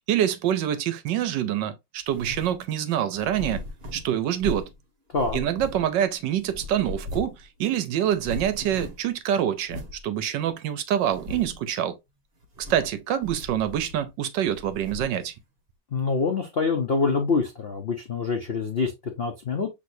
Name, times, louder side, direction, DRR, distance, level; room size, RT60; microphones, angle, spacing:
voice 1, 0.1-3.6 3.9-4.7 5.3-12.0 12.7-15.3, right 10 dB, 70° right, 1.2 m, -26 dB
sound 1, 2.1-2.6 3.1-4.8 5.1-6.1 6.4-7.5 7.7-7.8 8.1-9.1 9.7-10.0 10.5-10.6 11.0-11.7 12.4-13.0 13.2-14.1 14.5-15.3, left 2 dB, 40° right, 1.0 m, -38 dB
voice 2, 15.9-19.7, left 4 dB, 75° left, 0.5 m, -25 dB
6.3 x 3.2 x 2.6 m
omnidirectional pair, 2.2 m